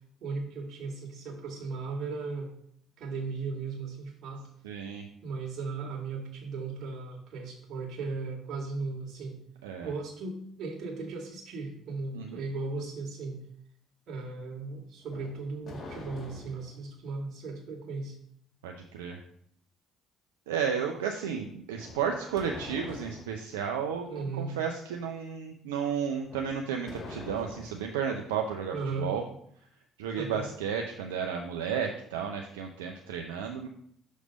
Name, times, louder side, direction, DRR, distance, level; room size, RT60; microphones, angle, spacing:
voice 1, 0.2-2.5 3.0-4.4 5.2-9.4 9.8-13.4 14.1-18.2 24.1-24.5 28.7-29.1 30.1-30.4, right 4 dB, 60° right, -1 dB, 1.9 m, -36 dB
voice 2, 4.6-5.1 9.6-9.9 12.1-12.4 18.6-19.2 20.5-29.2 30.0-33.7, right 7 dB, 85° right, 3 dB, 0.5 m, -33 dB
sound 1, 15.0-16.8 21.8-23.4 26.2-27.9, left 2 dB, 45° left, 2.1 m, -45 dB
6.3 x 3.3 x 5.1 m, 0.67 s
hypercardioid pair, 55°, 0 cm